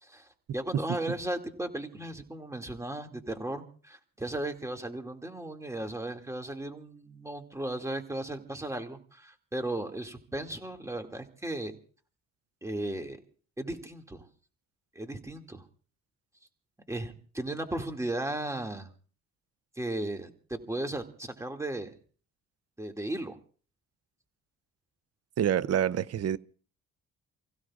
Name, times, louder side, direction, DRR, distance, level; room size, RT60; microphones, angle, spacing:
voice 1, 0.0-11.7 12.6-13.2 13.6-14.3 14.9-15.6 16.9-18.9 19.8-21.9 22.8-23.4, right 1 dB, 10° right, 2.4 m, -36 dB
voice 2, 25.4-26.4, right 10 dB, 55° right, 0.7 m, -27 dB
29.5 x 16.0 x 2.5 m
cardioid pair, 90°, 30 cm